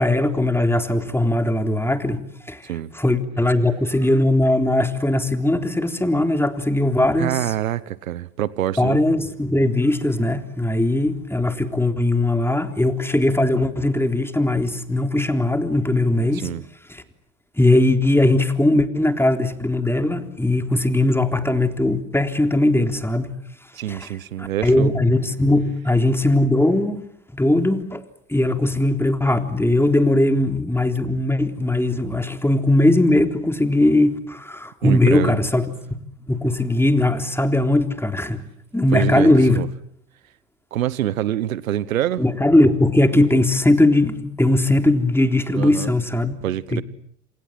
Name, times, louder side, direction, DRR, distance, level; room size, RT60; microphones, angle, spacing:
voice 1, 0.0-7.5 8.8-16.5 16.9-17.0 17.6-23.3 23.9-24.1 24.4-27.0 27.3-28.0 28.3-35.6 36.3-38.4 38.7-39.6 42.2-46.4 46.7-46.8, left 1 dB, 5° left, 6 dB, 3.6 m, -19 dB
voice 2, 7.2-9.0 16.3-16.6 23.7-24.9 34.8-35.3 38.9-39.7 40.7-42.2 45.5-45.9 46.4-46.8, right 12 dB, 85° right, 19 dB, 1.1 m, -25 dB
28.0 x 27.5 x 7.7 m, 0.70 s
hypercardioid pair, 70°, 40 cm